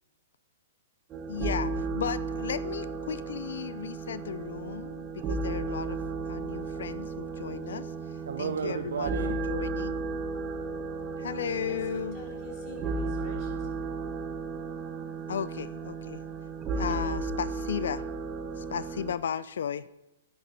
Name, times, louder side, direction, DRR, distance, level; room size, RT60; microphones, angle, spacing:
sound 1, 1.1-19.1, right 4 dB, 25° right, 1.5 m, -34 dB
voice 1, 1.3-6.0 6.3-7.9 8.4-10.0 11.2-12.2 15.3-16.2 16.7-18.0 18.6-19.9, left 8 dB, 75° left, 17 dB, 0.3 m, -35 dB
voice 2, 8.3-9.4 10.2-11.2, right 7 dB, 80° right, 8 dB, 0.5 m, -35 dB
voice 3, 11.7-14.0, left 1 dB, 40° left, 1 dB, 2.6 m, -48 dB
10.5 x 9.2 x 4.0 m, 0.97 s
hypercardioid pair, 135°, 0 cm